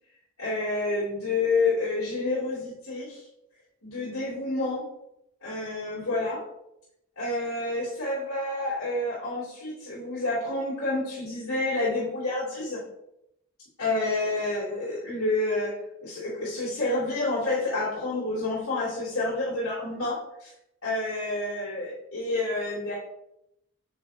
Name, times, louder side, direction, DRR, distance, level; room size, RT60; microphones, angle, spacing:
voice 1, 0.4-3.2 3.8-4.8 5.4-6.4 7.2-12.8 13.8-15.7 16.0-20.5 20.8-22.9, left 2 dB, 85° left, -10 dB, 3.0 m, -29 dB
8.5 x 6.2 x 2.8 m, 0.82 s
head